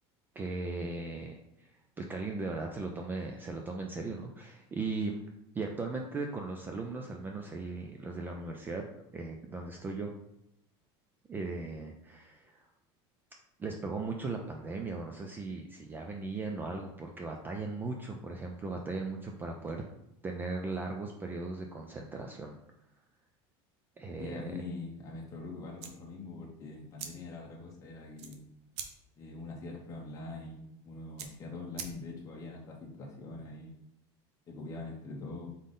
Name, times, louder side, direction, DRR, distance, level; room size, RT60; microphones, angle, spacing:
voice 1, 0.4-1.7 2.0-5.2 5.5-8.9 9.1-10.1 11.3-12.7 13.6-19.8 20.2-22.6 24.0-24.5, right 3 dB, 15° right, 2 dB, 0.3 m, -38 dB
voice 2, 24.2-28.5 29.2-33.7 34.5-35.5, left 3 dB, 25° left, -2 dB, 0.7 m, -43 dB
sound 1, 25.7-32.4, right 7 dB, 80° right, 0.7 m, -48 dB
3.8 x 3.7 x 3.7 m, 0.81 s
supercardioid pair, 155°, 14 cm